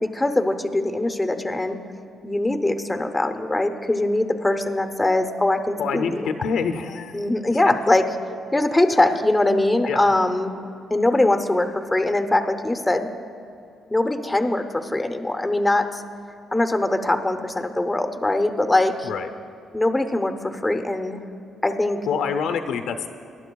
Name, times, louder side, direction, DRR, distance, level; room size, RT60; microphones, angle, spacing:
voice 1, 0.0-1.8 2.2-6.3 7.1-8.1 8.5-10.5 10.9-13.1 13.9-16.0 16.5-19.1 19.7-21.2 21.6-22.1, left 2 dB, 10° left, 6 dB, 0.7 m, -22 dB
voice 2, 5.8-7.2 9.9-10.1 19.0-19.3 22.1-23.1, left 6 dB, 80° left, 7 dB, 0.6 m, -26 dB
21.0 x 11.5 x 2.3 m, 2.6 s
cardioid pair, 105°, 0 cm